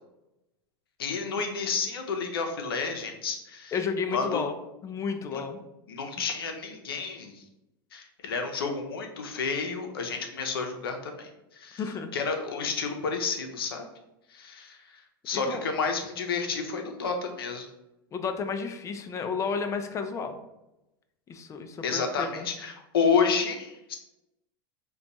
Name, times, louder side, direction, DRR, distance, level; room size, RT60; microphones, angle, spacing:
voice 1, 1.0-3.7 4.1-4.4 5.3-5.4 5.9-7.4 7.9-11.8 12.1-13.8 14.3-17.7 21.8-24.0, left 5 dB, 80° left, 4 dB, 0.6 m, -30 dB
voice 2, 3.7-4.5 4.8-5.6 11.8-12.1 15.3-15.7 18.1-20.4 21.3-22.5, left 5 dB, 25° left, 7 dB, 0.4 m, -32 dB
2.5 x 2.3 x 4.0 m, 0.91 s
hypercardioid pair, 95°, 12 cm